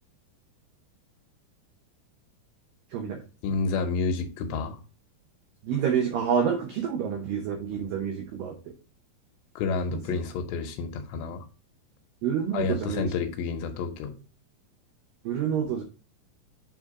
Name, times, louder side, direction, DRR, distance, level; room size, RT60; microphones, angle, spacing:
voice 1, 2.9-3.2 5.6-8.5 9.9-10.2 12.2-13.1 15.3-15.8, right 7 dB, 85° right, 1.9 m, -28 dB
voice 2, 3.4-4.8 9.6-11.4 12.5-14.2, left 4 dB, 75° left, 2.9 m, -29 dB
7.8 x 3.8 x 4.7 m
omnidirectional pair, 5.2 m